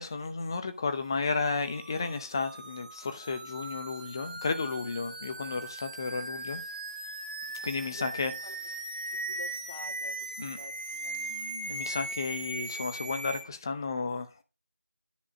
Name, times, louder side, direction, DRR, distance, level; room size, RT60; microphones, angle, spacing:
voice 1, 0.0-6.6 7.6-8.3 10.4-10.6 11.1-14.4, left 4 dB, 20° left, 0.7 m, -33 dB
sound 1, 1.2-13.4, right 2 dB, 40° right, 1.6 m, -39 dB
voice 2, 7.7-8.6 9.1-11.1, right 1 dB, 85° right, 2.0 m, -49 dB
10.0 x 4.8 x 4.9 m
figure-of-eight pair, 170°, 7 cm